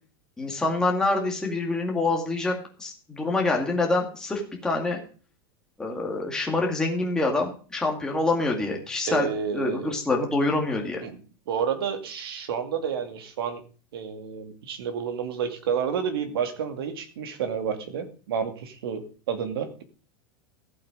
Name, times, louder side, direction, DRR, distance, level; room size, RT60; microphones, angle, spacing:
voice 1, 0.4-2.5 2.8-5.0 5.8-11.0, left 2 dB, 5° left, 0 dB, 2.1 m, -26 dB
voice 2, 9.1-10.0 11.0-11.2 11.5-13.6 13.9-19.8, right 7 dB, 90° right, 7 dB, 2.4 m, -30 dB
14.5 x 7.8 x 5.1 m, 0.38 s
supercardioid pair, 180°, 12 cm